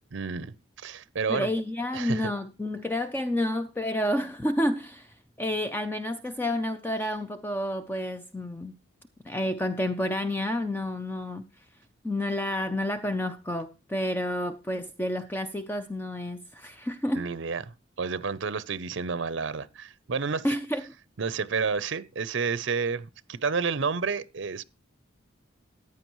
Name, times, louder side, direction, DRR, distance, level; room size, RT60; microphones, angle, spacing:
voice 1, 0.1-1.5 1.9-2.3 17.1-17.7 18.0-20.5 21.2-24.6, right 5 dB, 70° right, 0.6 m, -30 dB
voice 2, 1.3-8.7 9.2-11.5 12.0-17.3 20.4-20.8, left 1 dB, 10° left, 0.4 m, -30 dB
14.5 x 9.6 x 3.0 m
head